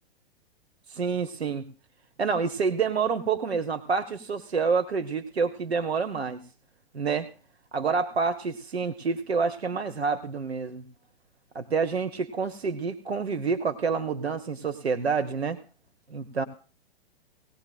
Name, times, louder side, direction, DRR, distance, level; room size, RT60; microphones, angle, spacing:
voice 1, 0.9-1.6 2.2-6.4 6.9-7.3 7.7-10.8 11.5-15.6 16.1-16.4, right 5 dB, 90° right, 9 dB, 0.9 m, -28 dB
18.5 x 17.5 x 2.3 m, 0.37 s
figure-of-eight pair, 110°, 31 cm